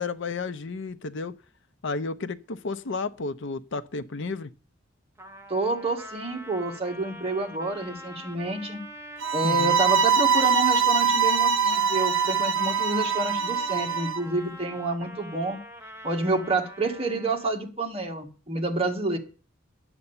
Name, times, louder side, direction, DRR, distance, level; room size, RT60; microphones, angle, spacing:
voice 1, 0.0-1.4 1.8-4.5 9.4-9.8, left 4 dB, 65° left, 0.7 m, -32 dB
Trumpet, 5.2-17.6, right 1 dB, 15° right, 0.9 m, -43 dB
voice 2, 5.5-8.8 9.3-15.6 16.0-19.2, right 2 dB, 30° right, 1.8 m, -28 dB
sound 1, 9.2-14.2, right 6 dB, 65° right, 0.8 m, -23 dB
11.0 x 7.9 x 7.2 m
head